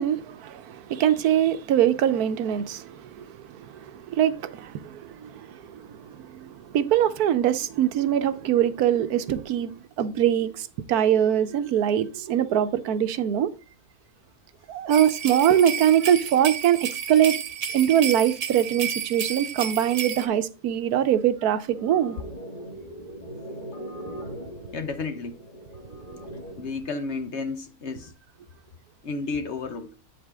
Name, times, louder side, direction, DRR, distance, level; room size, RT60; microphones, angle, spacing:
voice 1, 0.0-13.5 14.7-17.3 17.7-22.2, right 10 dB, 75° right, 1.2 m, -23 dB
sound 1, 14.9-20.3, right 8 dB, 55° right, 1.2 m, -31 dB
sound 2, 21.7-26.7, equal, 30° left, 1.8 m, -40 dB
voice 2, 24.7-25.4 26.6-28.1 29.0-29.9, left 4 dB, 55° left, 1.0 m, -32 dB
8.7 x 5.1 x 3.5 m
omnidirectional pair, 1.6 m